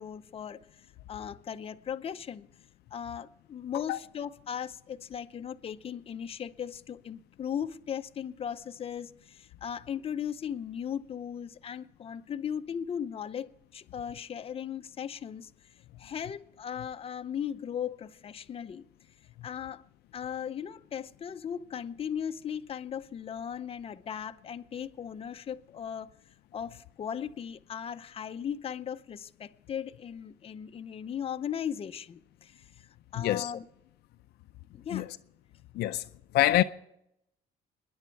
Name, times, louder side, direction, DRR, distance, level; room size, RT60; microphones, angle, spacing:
voice 1, 0.0-2.5 2.9-18.8 19.4-19.8 20.1-26.1 26.5-33.6 34.7-35.1, left 8 dB, 35° left, 0.6 m, -37 dB
voice 2, 33.1-33.5 34.9-35.2 35.7-36.1 36.3-36.6, left 14 dB, 75° left, 0.5 m, -25 dB
27.5 x 10.5 x 4.6 m
cardioid pair, 110°, 17 cm